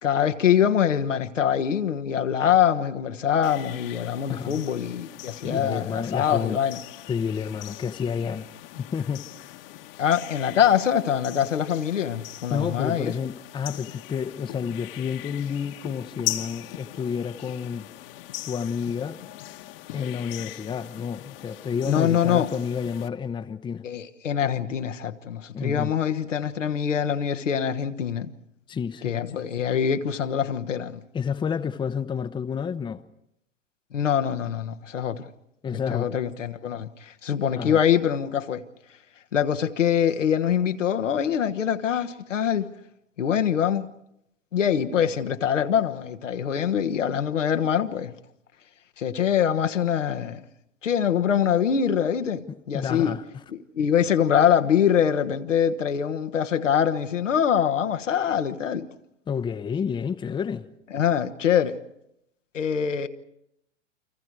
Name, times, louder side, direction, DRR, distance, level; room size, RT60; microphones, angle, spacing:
voice 1, 0.0-6.8 10.0-13.1 21.9-22.5 23.8-28.3 29.0-31.0 33.9-35.3 35.9-38.6 39.3-42.7 43.2-43.9 44.5-48.1 49.0-50.4 50.8-53.1 53.5-58.9 60.9-61.8 62.5-63.1, left 8 dB, 80° left, 1.4 m, -24 dB
sound 1, 3.4-23.1, left 16 dB, 50° left, 1.4 m, -40 dB
voice 2, 4.3-4.6 5.4-6.6 7.1-8.5 8.8-9.3 12.5-17.9 18.4-19.2 19.9-23.8 25.5-25.9 28.7-29.2 31.1-33.0 35.6-36.1 37.6-37.8 52.5-53.2 59.3-60.7, left 7 dB, 15° left, 0.8 m, -30 dB
30.0 x 24.5 x 4.7 m
hypercardioid pair, 105°, 37 cm